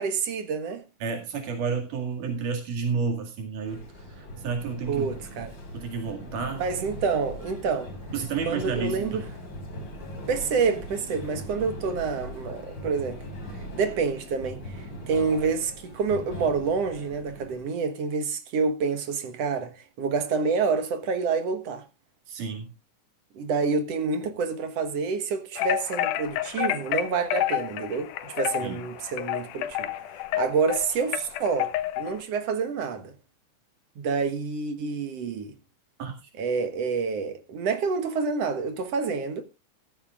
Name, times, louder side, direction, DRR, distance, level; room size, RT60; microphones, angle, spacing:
voice 1, 0.0-0.8 4.9-5.5 6.6-7.9 8.5-9.2 10.3-13.2 13.7-21.8 23.4-29.9 30.3-33.1 34.0-35.5 36.4-39.4, right 5 dB, 60° right, 2.3 m, -28 dB
voice 2, 1.0-3.8 4.2-5.2 5.7-6.6 8.1-9.3 22.3-22.7 28.6-28.8 36.0-36.3, right 5 dB, 90° right, 3.7 m, -31 dB
sound 1, 3.7-17.6, equal, 35° left, 4.2 m, -40 dB
sound 2, 25.6-32.2, left 14 dB, 85° left, 2.4 m, -29 dB
14.5 x 14.0 x 2.4 m
omnidirectional pair, 3.5 m